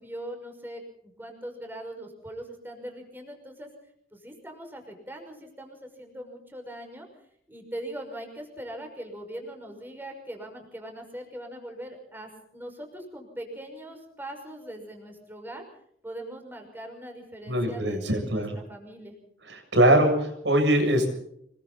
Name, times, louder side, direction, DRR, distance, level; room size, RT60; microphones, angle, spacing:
voice 1, 0.0-3.7 4.1-7.1 7.5-15.6 16.0-19.2, right 1 dB, 10° right, 3 dB, 5.9 m, -41 dB
voice 2, 17.5-18.6 19.4-21.1, right 1 dB, 75° right, 4 dB, 7.4 m, -22 dB
27.0 x 23.0 x 4.2 m, 0.71 s
head